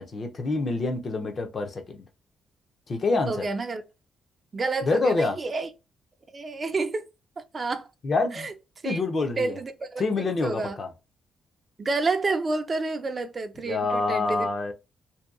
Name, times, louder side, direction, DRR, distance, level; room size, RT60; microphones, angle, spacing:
voice 1, 0.0-2.1 2.9-3.5 4.8-5.4 8.0-8.5 8.8-9.6 10.0-10.9 13.6-14.7, left 3 dB, 45° left, 0.6 m, -26 dB
voice 2, 3.3-3.8 4.5-5.7 6.3-7.0 7.5-7.9 8.3-8.5 8.8-9.0 9.4-10.0 10.4-10.8 11.8-14.5, right 3 dB, 35° right, 0.4 m, -29 dB
2.7 x 2.2 x 2.3 m
cardioid pair, 95°, 0 cm